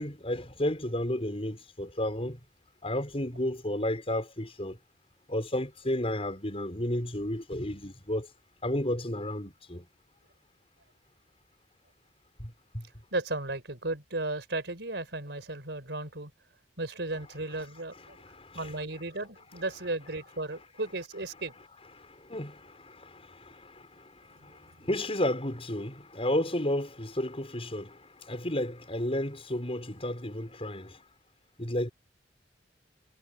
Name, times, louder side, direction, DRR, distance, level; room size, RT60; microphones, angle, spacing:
voice 1, 0.0-2.4 2.8-4.8 5.3-8.3 8.6-9.8 12.4-12.8 18.2-18.6 22.0-31.0 31.6-31.9, left 1 dB, 30° left, 6.5 m, -32 dB
voice 2, 13.1-16.3 16.8-18.2 18.5-21.5 24.4-24.6, right 2 dB, 70° right, 5.2 m, -35 dB
head